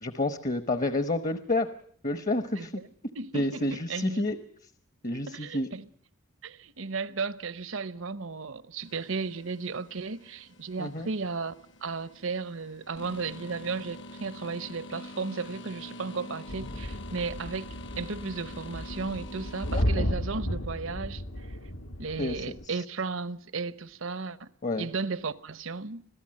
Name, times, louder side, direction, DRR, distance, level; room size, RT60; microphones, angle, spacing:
voice 1, 0.0-1.7 2.0-2.7 3.3-4.4 5.0-5.7 10.8-11.1 19.7-20.1 22.2-22.5 24.6-24.9, left 2 dB, 35° left, 1.0 m, -29 dB
voice 2, 3.1-4.3 5.3-5.9 6.4-11.5 11.8-21.5 22.0-24.5 24.8-26.1, right 4 dB, 70° right, 0.9 m, -35 dB
sound 1, 8.8-19.8, left 1 dB, 55° left, 1.3 m, -46 dB
sound 2, 16.5-22.6, equal, 80° left, 1.8 m, -34 dB
25.5 x 17.0 x 7.6 m
head